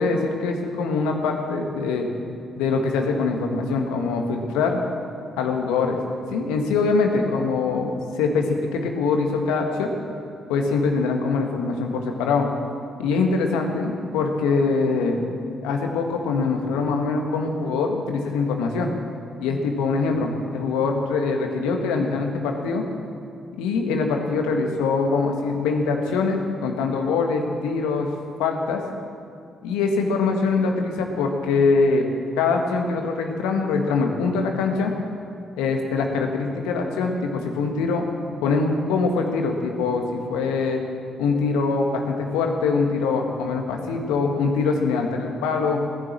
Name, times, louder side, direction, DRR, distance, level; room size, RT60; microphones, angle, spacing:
voice 1, 0.0-2.1 2.6-4.8 5.4-6.0 6.3-9.9 10.5-12.5 13.0-15.2 15.6-18.9 19.4-22.8 23.6-28.1 28.4-28.8 29.6-32.0 32.4-34.9 35.6-38.1 38.4-40.8 41.2-45.8, left 4 dB, 85° left, 3 dB, 1.6 m, -23 dB
18.0 x 10.5 x 7.5 m, 2.5 s
hypercardioid pair, 45°, 0 cm